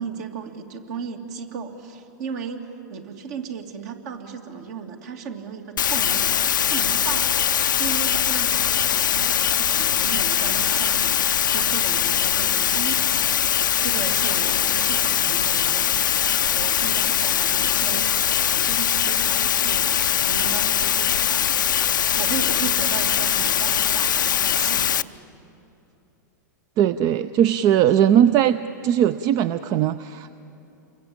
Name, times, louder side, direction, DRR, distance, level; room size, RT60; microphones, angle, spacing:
voice 1, 0.0-6.3 6.7-16.0 16.5-18.1 18.5-21.4 22.1-25.1, right 6 dB, 60° right, 4 dB, 2.8 m, -35 dB
sound 1, 5.8-25.0, left 9 dB, 85° left, 0.6 m, -21 dB
voice 2, 26.8-28.6 28.8-30.3, right 10 dB, 40° right, 13 dB, 0.6 m, -19 dB
28.5 x 22.5 x 8.8 m, 2.9 s
hypercardioid pair, 120°, 10 cm